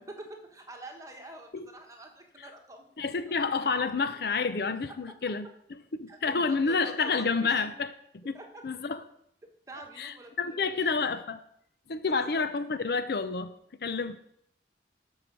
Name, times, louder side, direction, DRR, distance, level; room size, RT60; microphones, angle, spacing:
voice 1, 0.0-2.8 3.3-3.5 4.9-5.0 6.1-7.7 8.3-8.6 9.4-10.9 12.2-12.4, right 2 dB, 20° right, 1.3 m, -47 dB
voice 2, 3.0-5.5 5.9-7.9 8.2-8.4 8.6-9.0 10.0-11.4 11.9-13.5 13.8-14.2, left 4 dB, 60° left, 0.6 m, -29 dB
13.0 x 4.8 x 6.1 m
head